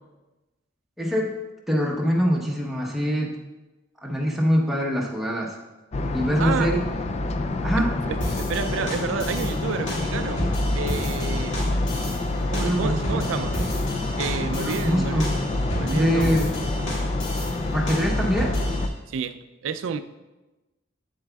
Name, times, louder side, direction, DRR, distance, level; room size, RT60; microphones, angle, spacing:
voice 1, 1.0-1.3 1.7-3.4 4.0-5.6 6.1-6.8 7.6-7.9 12.5-13.2 14.6-15.4 15.9-16.5 17.7-18.6, equal, ahead, -2 dB, 0.9 m, -24 dB
sound 1, 5.9-18.9, left 2 dB, 35° left, 0.3 m, -27 dB
voice 2, 6.4-6.7 8.1-10.4 10.7-11.6 12.5-13.6 14.2-15.2 15.8-16.5 19.1-20.0, right 6 dB, 80° right, 11 dB, 0.4 m, -30 dB
sound 2, 8.2-18.9, equal, 75° left, 1.9 m, -33 dB
8.1 x 7.4 x 2.3 m, 1.1 s
head